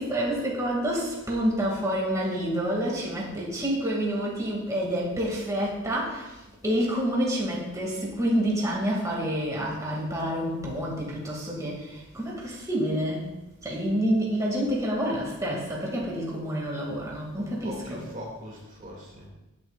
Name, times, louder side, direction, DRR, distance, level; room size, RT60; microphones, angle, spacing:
voice 1, 0.0-13.3 13.6-18.1, equal, 15° right, -4 dB, 2.3 m, -28 dB
voice 2, 17.3-19.3, equal, 40° right, -2 dB, 2.4 m, -41 dB
17.5 x 8.8 x 2.5 m, 1.0 s
head